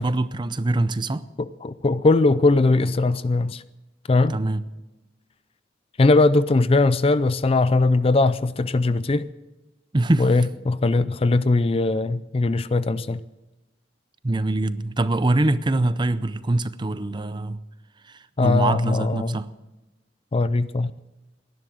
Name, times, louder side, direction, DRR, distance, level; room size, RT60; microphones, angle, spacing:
voice 1, 0.0-1.3 4.3-4.6 9.9-10.3 14.2-17.6 18.0-19.5, right 2 dB, 25° right, 0.6 m, -23 dB
voice 2, 1.4-3.6 4.1-4.4 6.0-9.3 10.2-13.2 18.4-19.4 20.3-20.9, left 3 dB, 30° left, 0.4 m, -20 dB
19.0 x 11.0 x 6.4 m
head